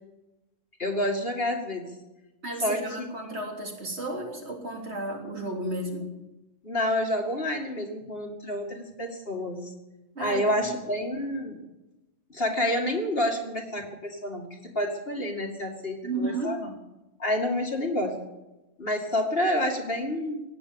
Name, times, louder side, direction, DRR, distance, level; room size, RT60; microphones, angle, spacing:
voice 1, 0.8-1.9 2.6-3.1 6.6-9.7 10.2-11.6 12.3-16.7 17.2-18.2 18.8-20.4, left 1 dB, 50° left, 1 dB, 2.5 m, -29 dB
voice 2, 2.4-6.1 10.2-10.7 16.0-16.6, right 2 dB, 60° right, 0 dB, 3.7 m, -33 dB
17.5 x 10.5 x 7.1 m, 1.0 s
omnidirectional pair, 1.3 m